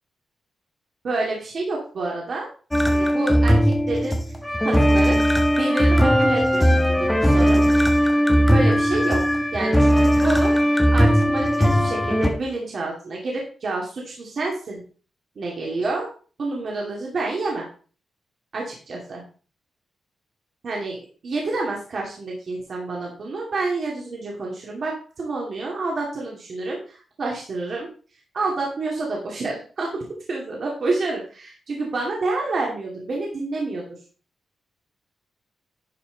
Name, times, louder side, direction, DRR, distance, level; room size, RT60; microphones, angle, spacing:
voice 1, 1.0-2.5 2.9-4.2 4.6-7.6 8.5-14.8 15.4-16.1 16.4-17.7 18.5-19.2 20.6-21.0 21.2-27.9 28.3-30.0 30.3-33.8, right 3 dB, 45° right, -2 dB, 2.4 m, -28 dB
sound 1, 2.7-12.3, equal, 5° left, 1.2 m, -18 dB
11.0 x 5.9 x 4.0 m, 0.38 s
wide cardioid pair, 170°, 0 cm